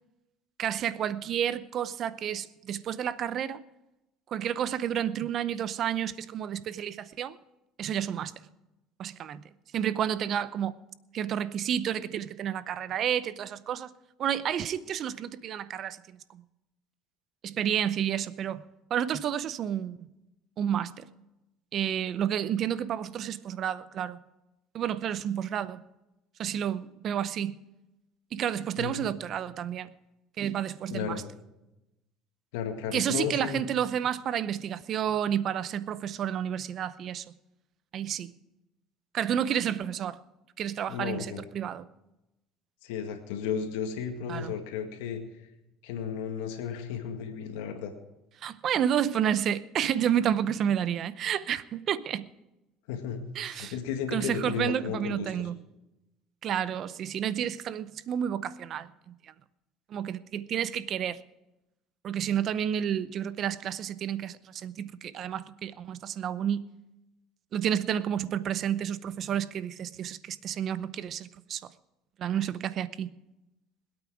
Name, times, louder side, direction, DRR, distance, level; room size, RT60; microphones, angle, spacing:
voice 1, 0.6-3.6 4.3-7.4 7.8-8.4 9.0-9.4 9.7-10.8 11.1-13.9 14.2-16.4 17.4-18.6 18.9-20.0 20.6-21.1 21.7-24.2 24.7-25.8 26.4-27.5 28.3-29.9 30.4-31.2 32.9-37.3 37.9-38.3 39.1-40.2 40.6-41.9 44.3-44.5 48.4-52.3 53.4-53.7 54.1-55.6 56.4-59.3 59.9-61.2 62.0-66.6 67.5-71.6 72.2-73.1, right 9 dB, 50° right, 0.7 m, -30 dB
voice 2, 30.9-31.2 32.5-33.6 40.9-41.5 42.8-45.2 45.8-47.9 52.9-55.5, left 7 dB, 85° left, 1.9 m, -34 dB
20.5 x 8.9 x 4.9 m
supercardioid pair, 95°, 0 cm